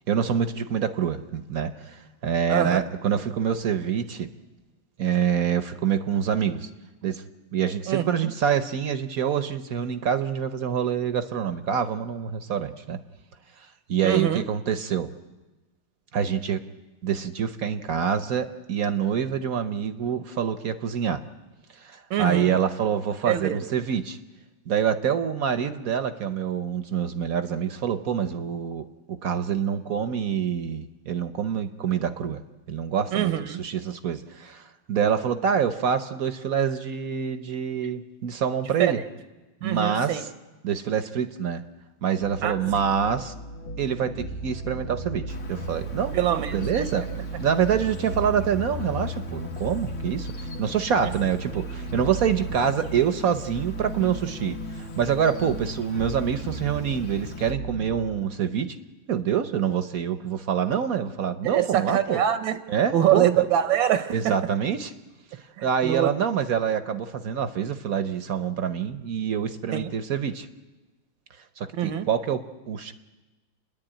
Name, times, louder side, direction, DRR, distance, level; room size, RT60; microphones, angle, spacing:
voice 1, 0.1-4.3 5.0-6.7 7.0-7.2 7.5-13.0 13.9-15.1 16.1-16.6 17.0-21.2 21.7-24.2 24.7-32.4 32.7-34.6 34.9-39.0 39.6-40.3 40.6-41.6 42.0-43.3 43.8-47.1 47.4-58.8 59.1-62.2 62.7-63.5 64.1-64.9 65.6-70.5 71.6-72.9, right 8 dB, 60° right, 1.0 m, -26 dB
voice 2, 7.9-8.3 14.0-14.4 22.1-22.6 23.2-23.6 33.1-33.6 38.8-38.9 39.6-40.2 42.4-42.9 46.1-46.9 61.4-62.6 62.9-64.3 65.6-66.1 69.7-69.9 71.8-72.1, right 11 dB, 80° right, 1.6 m, -24 dB
sound 1, 42.2-57.9, right 1 dB, 90° left, 2.2 m, -35 dB
Insect, 45.3-57.5, left 2 dB, 45° left, 1.5 m, -45 dB
29.0 x 10.5 x 9.0 m
omnidirectional pair, 2.1 m